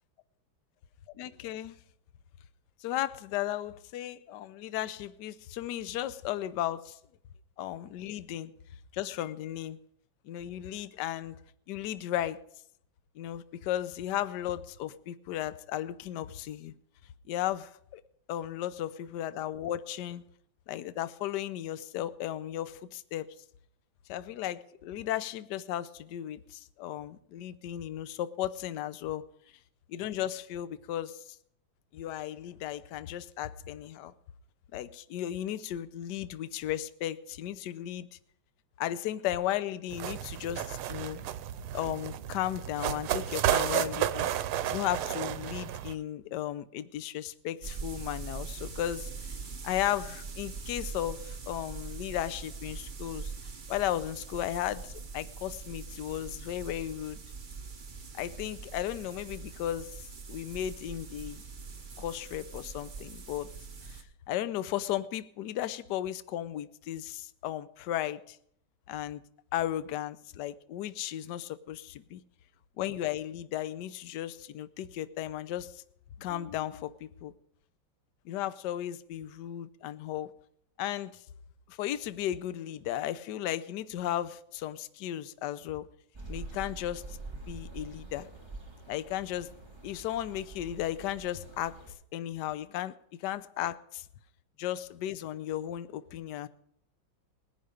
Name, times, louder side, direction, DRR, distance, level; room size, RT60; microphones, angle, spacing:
voice 1, 1.2-1.7 2.8-7.0 7.6-8.5 8.9-9.8 10.2-11.4 11.7-12.4 13.2-16.7 17.3-18.0 18.3-20.2 20.7-23.3 24.1-29.2 29.9-31.2 31.9-34.1 34.7-38.1 38.8-41.3 41.7-44.3 44.7-49.1 49.6-53.3 53.7-57.2 58.2-59.9 60.3-61.4 62.0-63.5 64.3-68.4 68.9-69.2 69.5-72.2 72.8-75.8 76.2-77.3 78.2-80.3 80.8-81.1 81.7-85.9 86.3-87.0 87.5-88.3 88.9-89.5 89.8-91.7 92.1-92.9 93.2-94.0 94.6-96.5, left 12 dB, 65° left, 14 dB, 1.2 m, -35 dB
sound 1, 39.9-45.9, right 11 dB, 85° right, 1.6 m, -32 dB
sound 2, 47.6-64.0, right 5 dB, 35° right, 0.9 m, -43 dB
sound 3, 86.1-91.9, right 3 dB, 15° right, 2.1 m, -45 dB
19.0 x 10.5 x 5.1 m, 0.69 s
omnidirectional pair, 2.3 m